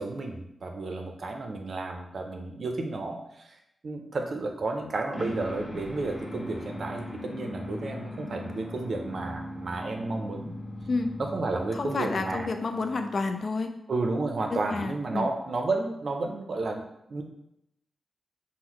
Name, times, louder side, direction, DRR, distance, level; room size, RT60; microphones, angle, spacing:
voice 1, 0.0-3.6 3.8-10.6 11.2-12.5 13.9-16.8 17.1-17.2, right 3 dB, 65° right, 3 dB, 0.5 m, -32 dB
sound 1, 5.1-13.4, left 1 dB, 35° left, 0.9 m, -39 dB
voice 2, 10.9-11.2 11.7-13.7 14.5-15.3, left 3 dB, 60° left, 7 dB, 0.3 m, -30 dB
3.8 x 2.0 x 3.0 m, 0.82 s
cardioid pair, 55°, 0 cm